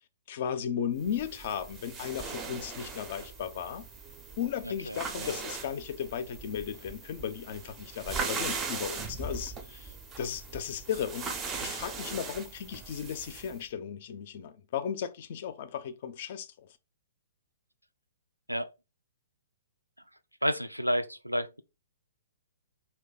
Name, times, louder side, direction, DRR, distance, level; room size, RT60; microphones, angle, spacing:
voice 1, 0.3-3.9 4.4-11.3 11.6-16.5, left 8 dB, 45° left, 0.4 m, -35 dB
sound 1, 1.0-13.6, right 4 dB, 20° right, 0.4 m, -39 dB
voice 2, 4.9-5.3 18.5-18.7 20.4-21.6, equal, 90° right, 0.3 m, -31 dB
2.6 x 2.2 x 3.9 m
figure-of-eight pair, 120°, 0 cm